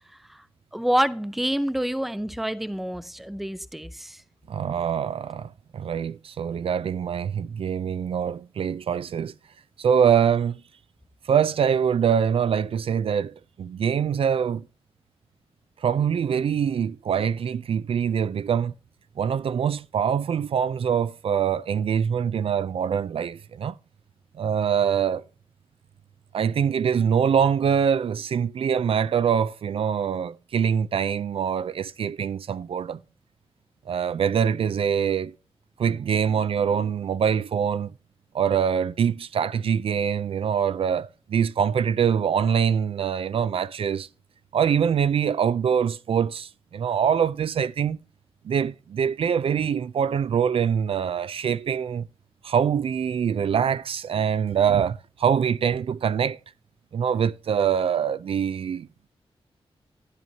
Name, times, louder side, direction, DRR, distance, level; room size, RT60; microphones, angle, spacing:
voice 1, 0.7-4.2, equal, ahead, 0.5 m, -27 dB
voice 2, 4.5-9.3 9.8-10.6 11.3-14.6 15.8-18.7 19.2-23.7 24.4-25.2 26.3-33.0 33.9-35.3 35.8-37.9 38.3-44.1 44.5-48.0 48.4-52.0 52.4-56.4 56.9-58.9, right 7 dB, 65° right, 0.3 m, -24 dB
11.0 x 10.5 x 2.7 m
wide cardioid pair, 170°, 10 cm